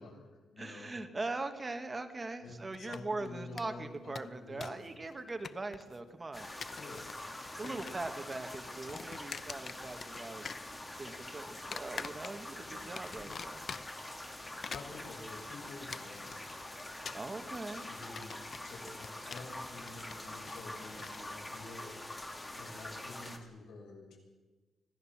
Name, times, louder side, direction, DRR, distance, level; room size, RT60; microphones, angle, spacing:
voice 1, 0.0-0.9 2.4-5.1 6.7-7.1 7.6-7.8 12.7-13.4 14.7-16.8 17.7-22.0 22.5-24.2, left 2 dB, 85° left, 1 dB, 7.5 m, -49 dB
voice 2, 0.6-6.8 7.6-13.6 17.1-17.9, right 2 dB, 20° right, 7 dB, 1.4 m, -41 dB
sound 1, 2.7-3.3 3.6-3.7 3.9-4.9 5.1-6.0 6.4-7.2 7.5-8.1 8.3-10.2 10.4-11.2 11.7-12.6 13.0-14.1 14.5-21.2, left 6 dB, 40° left, 0.8 m, -45 dB
sound 2, 6.3-23.4, left 1 dB, 15° left, 2.3 m, -45 dB
25.5 x 17.5 x 7.3 m, 1.2 s
wide cardioid pair, 160°, 0 cm